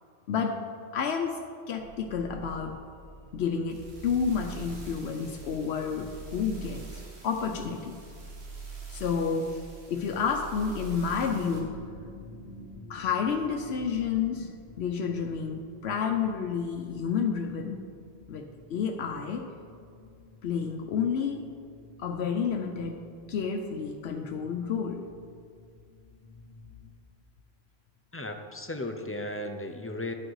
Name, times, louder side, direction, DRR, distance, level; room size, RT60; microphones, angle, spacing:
voice 1, 0.3-0.7 0.9-2.8 3.3-6.9 7.2-8.0 8.9-9.6 9.9-11.8 12.9-14.5 14.8-17.8 18.3-19.5 20.4-21.4 22.0-25.0, left 6 dB, 85° left, 4 dB, 0.9 m, -30 dB
sound 1, 1.8-11.6, right 4 dB, 85° right, 1.7 m, -44 dB
sound 2, 10.9-27.0, left 2 dB, 45° left, 1.0 m, -51 dB
voice 2, 28.1-30.1, left 1 dB, 20° left, 5 dB, 0.4 m, -35 dB
11.5 x 6.4 x 4.6 m, 2.3 s
omnidirectional pair, 1.1 m